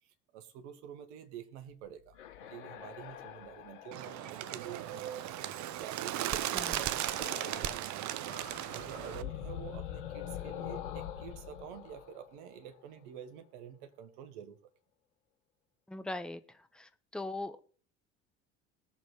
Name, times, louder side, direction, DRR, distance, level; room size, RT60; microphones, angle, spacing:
voice 1, 0.0-5.4 5.8-8.4 8.7-14.7, right 9 dB, 70° right, 1.5 m, -49 dB
sound 1, 1.8-6.0 7.1-7.8 8.1-13.0, left 10 dB, 75° left, 2.6 m, -45 dB
Bird, 3.9-9.2, right 13 dB, 50° right, 0.8 m, -36 dB
voice 2, 15.9-16.4 16.7-17.6, left 2 dB, ahead, 1.0 m, -40 dB
20.5 x 7.0 x 3.2 m
hypercardioid pair, 60°, 36 cm